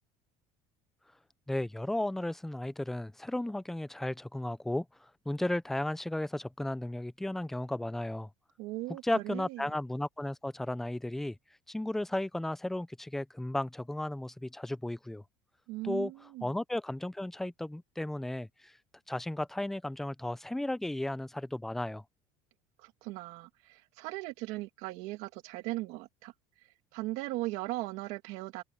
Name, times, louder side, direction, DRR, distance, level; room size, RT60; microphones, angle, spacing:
voice 1, 1.5-8.3 9.0-11.4 11.7-15.2 15.8-16.1 16.4-18.7 19.1-22.0, left 1 dB, 5° left, 0.5 m, -34 dB
voice 2, 8.6-9.6 15.7-16.5 22.8-26.3 26.9-28.6, right 19 dB, 65° right, 2.1 m, -38 dB
cardioid pair, 165°, 12 cm